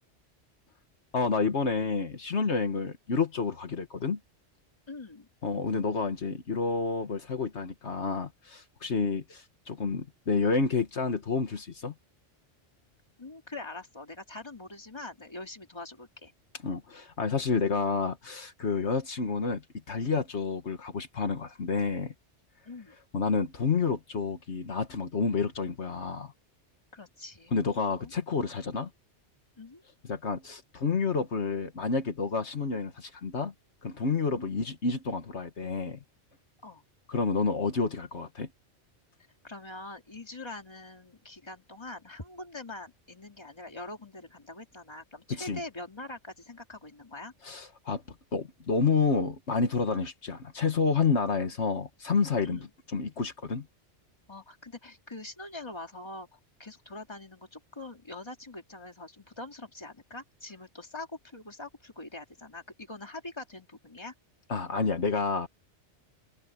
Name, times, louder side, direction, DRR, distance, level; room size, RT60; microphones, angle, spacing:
voice 1, 1.1-4.2 5.4-11.9 16.6-19.6 19.9-22.1 23.1-26.3 27.5-28.9 30.1-33.5 33.8-36.0 37.1-38.5 45.3-45.6 47.4-48.0 48.3-53.7 64.5-65.5, left 4 dB, 70° left, 1.8 m, -29 dB
voice 2, 4.9-5.3 13.2-16.3 22.6-23.0 26.9-27.5 27.9-28.1 29.6-29.8 34.3-34.5 36.6-36.8 39.4-47.3 52.4-52.7 54.3-64.1, left 2 dB, 25° left, 2.5 m, -43 dB
open air
omnidirectional pair, 1.2 m